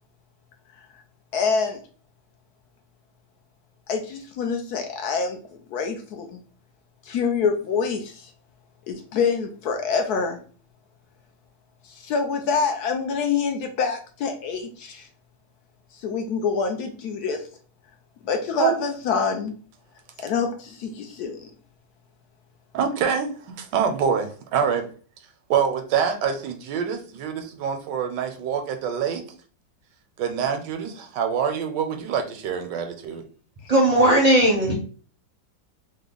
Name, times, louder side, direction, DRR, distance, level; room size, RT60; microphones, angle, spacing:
voice 1, 1.3-1.8 3.9-5.4 5.7-6.4 7.1-8.3 8.9-10.4 11.9-15.1 16.0-17.4 18.2-19.5 20.2-21.5, left 5 dB, 70° left, 1.0 m, -26 dB
voice 2, 22.7-24.9 25.5-29.2 30.2-33.2, right 7 dB, 80° right, 1.2 m, -25 dB
voice 3, 33.7-34.7, right 1 dB, 35° right, 0.6 m, -17 dB
3.4 x 2.1 x 3.7 m
omnidirectional pair, 1.9 m